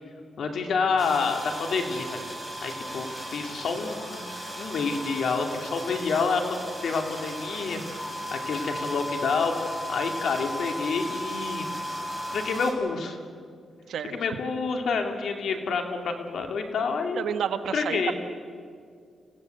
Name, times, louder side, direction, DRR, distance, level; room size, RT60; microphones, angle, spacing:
voice 1, 0.4-2.3 2.6-4.2 4.6-6.6 6.8-11.7 12.3-13.2 14.1-17.2 17.7-18.1, left 4 dB, 75° left, 4 dB, 2.7 m, -28 dB
sound 1, 1.0-12.7, equal, 20° left, 4.9 m, -36 dB
voice 2, 17.2-18.1, right 8 dB, 80° right, 8 dB, 1.3 m, -29 dB
27.0 x 16.5 x 8.0 m, 2.2 s
cardioid pair, 85°, 0 cm